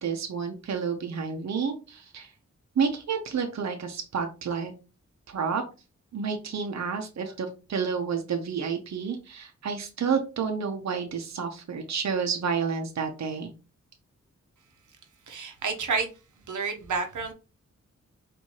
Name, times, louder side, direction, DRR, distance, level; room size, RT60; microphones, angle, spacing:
voice 1, 0.0-2.3 2.8-4.7 5.3-5.6 6.1-13.5, right 6 dB, 65° right, 0.7 m, -30 dB
voice 2, 15.3-16.1 16.5-17.3, right 5 dB, 90° right, 0.9 m, -29 dB
4.6 x 2.6 x 2.8 m
cardioid pair, 65°, 30 cm